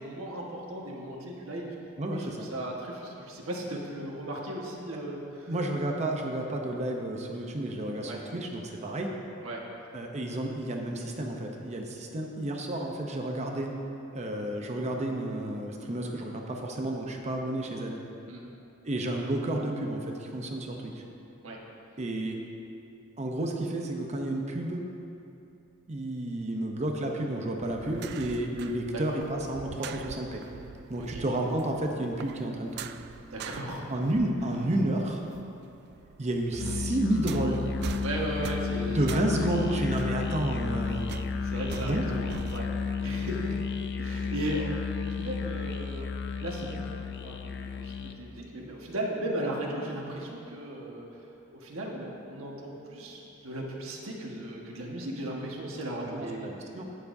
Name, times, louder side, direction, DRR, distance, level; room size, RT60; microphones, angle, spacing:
voice 1, 0.0-1.7 2.2-5.5 8.1-8.2 9.4-9.6 18.3-18.5 21.4-21.6 28.9-29.0 31.0-31.2 33.3-33.8 38.0-39.8 41.4-42.7 43.0-43.6 44.0-46.1 46.4-51.3 51.5-56.5, right 1 dB, 70° right, -2 dB, 1.4 m, -36 dB
voice 2, 2.0-2.5 5.5-9.1 9.9-13.7 14.1-18.0 18.8-21.0 22.0-22.4 23.2-24.8 25.9-30.4 30.9-32.8 33.9-35.2 36.2-37.6 38.9-41.0 41.8-42.1 55.3-55.4 56.1-56.8, right 1 dB, 30° right, 1 dB, 0.7 m, -31 dB
sound 1, 27.6-35.5 35.7-42.7, right 7 dB, 50° right, 0.3 m, -44 dB
Musical instrument, 36.5-48.3, left 5 dB, 55° left, 0.5 m, -32 dB
18.0 x 7.0 x 2.7 m, 2.8 s
head